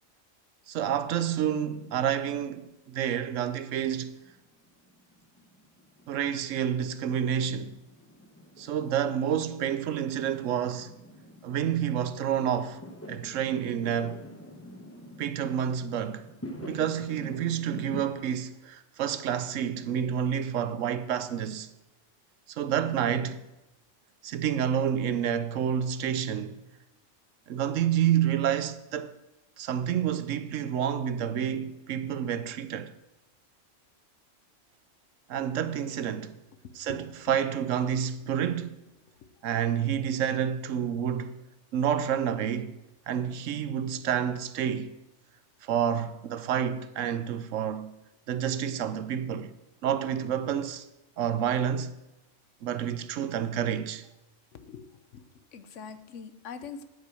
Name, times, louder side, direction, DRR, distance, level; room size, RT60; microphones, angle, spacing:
voice 1, 0.7-4.1 6.1-7.8 8.6-10.9 11.4-12.8 13.1-14.2 15.2-16.3 16.6-21.7 22.5-23.4 24.2-26.6 27.5-29.1 29.6-32.9 35.3-36.4 36.7-38.8 39.4-41.4 41.7-42.8 43.1-45.0 45.6-47.9 48.3-49.5 49.8-50.9 51.2-51.9 52.6-54.0, right 9 dB, 85° right, 1.1 m, -29 dB
Fireworks, 3.7-18.0, left 1 dB, 10° left, 0.9 m, -46 dB
voice 2, 54.5-55.2 55.5-56.8, left 6 dB, 75° left, 1.2 m, -43 dB
9.2 x 8.3 x 6.3 m
omnidirectional pair, 1.3 m